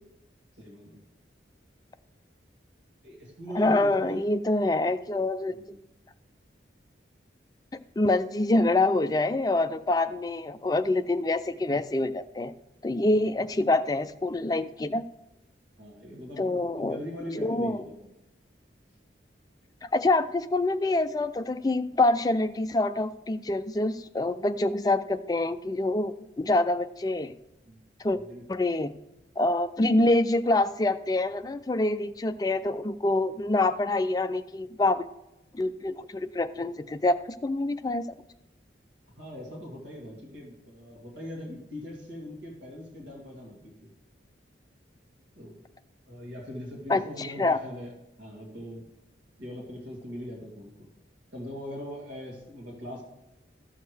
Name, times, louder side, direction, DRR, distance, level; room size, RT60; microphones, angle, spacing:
voice 1, 0.6-1.0 3.0-4.3 5.5-5.8 13.1-13.5 15.8-18.1 27.6-27.8 28.1-28.4 39.2-43.9 45.4-45.6 46.1-47.9 48.2-48.9 49.4-50.9 51.3-53.0, equal, 80° right, -2 dB, 2.3 m, -41 dB
voice 2, 3.5-5.6 8.0-12.5 12.8-15.0 16.4-17.0 17.4-17.8 19.8-27.3 28.0-28.2 28.5-28.9 29.4-35.1 35.5-38.0 46.9-47.6, left 2 dB, 20° left, 11 dB, 0.3 m, -26 dB
13.5 x 6.5 x 3.4 m, 0.92 s
head